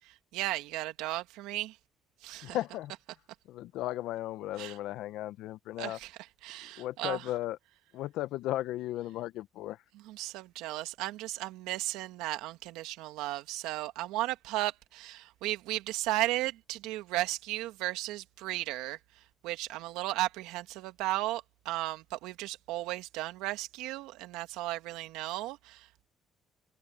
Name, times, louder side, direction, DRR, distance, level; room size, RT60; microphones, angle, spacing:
voice 1, 0.3-1.8 2.2-2.6 4.6-4.8 5.8-6.1 6.4-7.3 10.0-26.1, right 17 dB, 85° right, 2.1 m, -35 dB
voice 2, 2.4-2.9 3.5-6.0 6.8-7.6 7.9-9.8, left 15 dB, 75° left, 1.0 m, -35 dB
supercardioid pair, 70°, 0 cm